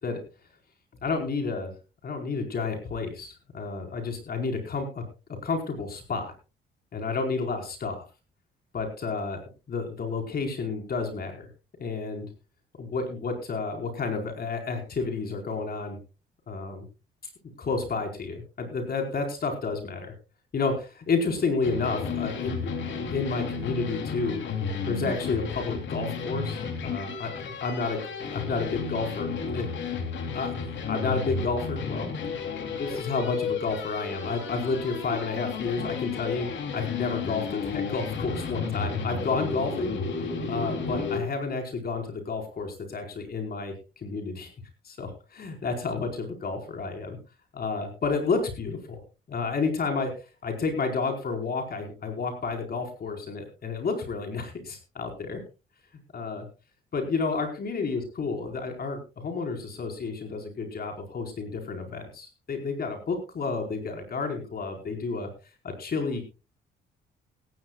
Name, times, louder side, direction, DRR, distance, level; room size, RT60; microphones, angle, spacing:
voice 1, 1.0-1.7 2.0-5.0 5.4-6.3 6.9-8.0 8.7-9.4 9.7-11.5 11.8-12.3 12.8-16.0 16.5-16.9 17.6-20.1 20.5-24.4 24.9-28.0 28.3-29.7 30.3-32.1 32.6-40.0 40.5-44.5 44.8-47.2 47.5-49.0 49.3-50.1 50.4-55.4 56.1-56.5 56.9-65.3 65.6-66.3, left 4 dB, 50° left, 3 dB, 4.7 m, -31 dB
sound 1, 21.6-41.2, left 5 dB, 70° left, 3.1 m, -32 dB
17.5 x 16.0 x 2.4 m, 0.31 s
cardioid pair, 90°, 20 cm